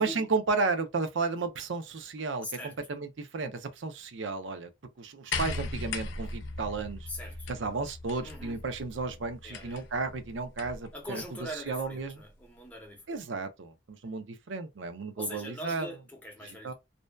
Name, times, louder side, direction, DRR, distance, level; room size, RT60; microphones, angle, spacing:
voice 1, 0.0-2.5 2.9-4.7 5.0-7.1 7.5-11.2 11.7-12.2 13.1-15.9 16.4-16.7, right 4 dB, 85° right, 0.5 m, -33 dB
voice 2, 2.4-2.8 7.1-7.5 8.2-8.6 9.4-9.8 10.9-13.2 15.2-16.7, left 1 dB, 10° left, 0.7 m, -42 dB
sound 1, 5.3-10.9 12.0-12.1, left 3 dB, 85° left, 0.5 m, -38 dB
2.6 x 2.1 x 2.2 m
head